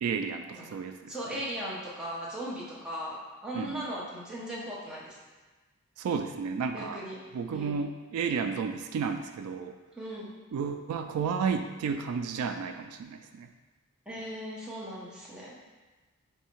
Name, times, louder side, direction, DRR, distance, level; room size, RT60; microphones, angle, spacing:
voice 1, 0.0-1.2 3.5-3.9 6.0-7.0 7.3-9.8 10.5-13.5, right 6 dB, 85° right, 11 dB, 0.3 m, -32 dB
voice 2, 1.1-3.2 3.4-5.1 6.7-7.1 7.5-7.8 10.0-10.3 14.1-15.5, equal, 5° right, -7 dB, 0.7 m, -38 dB
3.4 x 2.7 x 4.4 m, 1.3 s
head